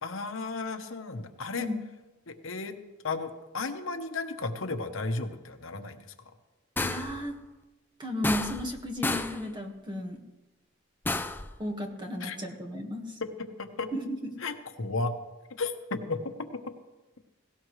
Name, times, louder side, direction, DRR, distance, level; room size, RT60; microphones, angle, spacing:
voice 1, 0.0-1.7 2.3-2.8 3.0-6.0 12.2-12.4 13.6-13.9 14.4-15.1 15.6-16.2, left 3 dB, 70° left, 7 dB, 1.1 m, -34 dB
sound 1, 6.8-7.2 8.2-8.8 9.0-9.4 11.0-11.5, left 2 dB, 10° left, 0.4 m, -31 dB
voice 2, 6.8-7.4 8.0-10.2 11.6-13.2 13.9-14.3, left 1 dB, 20° right, 2 dB, 1.6 m, -34 dB
17.5 x 17.5 x 3.2 m, 1.1 s
head